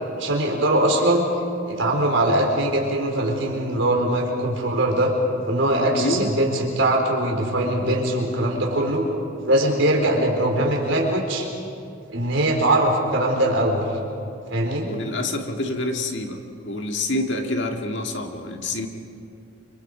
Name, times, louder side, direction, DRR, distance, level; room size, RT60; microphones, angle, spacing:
voice 1, 0.2-1.3 1.7-5.1 5.5-9.0 9.4-11.5 12.1-13.8 14.5-14.9, right 1 dB, 70° right, 0 dB, 4.2 m, -21 dB
voice 2, 6.0-6.3 14.8-18.9, left 2 dB, 60° left, 3 dB, 1.9 m, -27 dB
29.5 x 25.5 x 4.9 m, 2.5 s
head